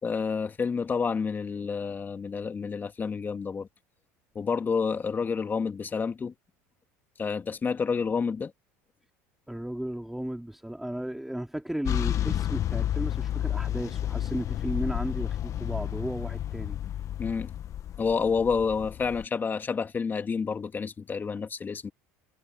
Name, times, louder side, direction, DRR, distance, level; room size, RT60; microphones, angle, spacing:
voice 1, 0.0-3.7 4.4-6.3 7.2-8.5 17.2-17.5 18.0-21.9, left 5 dB, 25° left, 2.2 m, -29 dB
voice 2, 9.5-16.8, right 1 dB, 5° right, 3.1 m, -34 dB
sound 1, 11.9-19.2, left 11 dB, 45° left, 1.5 m, -31 dB
supercardioid pair, 95°, 7 cm